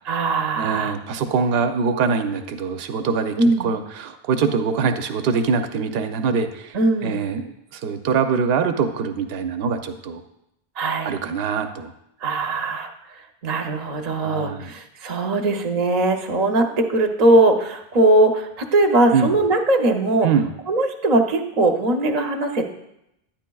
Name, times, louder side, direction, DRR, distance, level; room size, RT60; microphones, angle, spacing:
voice 1, 0.0-0.9 3.4-3.7 6.7-7.2 10.8-11.1 12.2-12.9 13.4-20.3 20.7-22.7, right 2 dB, 45° right, 4 dB, 0.7 m, -20 dB
voice 2, 0.6-6.8 7.0-10.2 11.0-11.9 14.2-14.7 19.1-19.3 20.2-20.5, right 5 dB, 75° right, 8 dB, 0.8 m, -23 dB
10.0 x 9.0 x 2.3 m, 0.82 s
omnidirectional pair, 1.1 m